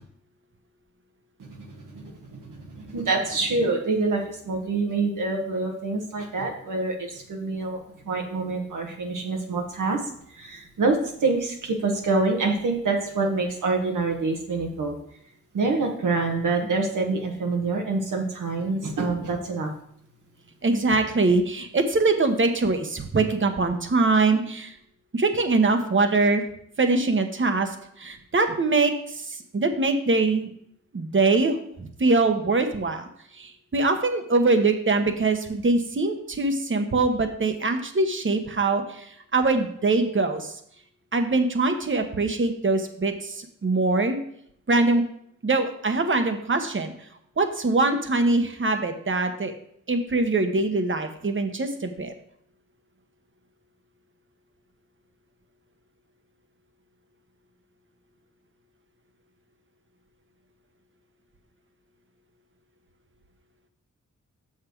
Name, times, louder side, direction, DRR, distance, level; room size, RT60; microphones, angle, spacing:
voice 1, 1.4-7.8 8.0-10.0 10.3-15.0 15.5-19.7, right 3 dB, 80° right, 0 dB, 1.3 m, -26 dB
voice 2, 20.6-24.7 25.1-26.4 26.8-30.5 30.9-33.1 33.3-40.6 41.1-44.2 44.7-45.0 45.4-46.9 47.4-49.5 49.9-52.1, right 3 dB, 40° right, 7 dB, 1.1 m, -23 dB
6.5 x 5.9 x 4.6 m, 0.69 s
cardioid pair, 60°, 31 cm